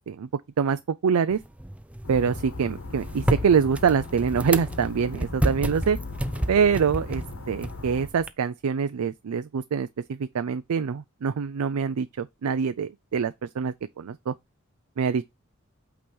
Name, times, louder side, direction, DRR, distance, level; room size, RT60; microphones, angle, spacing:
voice 1, 0.6-1.4 2.1-6.0 6.5-14.3 15.0-15.2, right 6 dB, 90° right, 0.4 m, -25 dB
sound 1, 1.3-8.3, right 1 dB, 5° right, 0.3 m, -31 dB
sound 2, 2.0-8.1, left 3 dB, 70° left, 1.4 m, -37 dB
8.5 x 3.0 x 5.2 m
head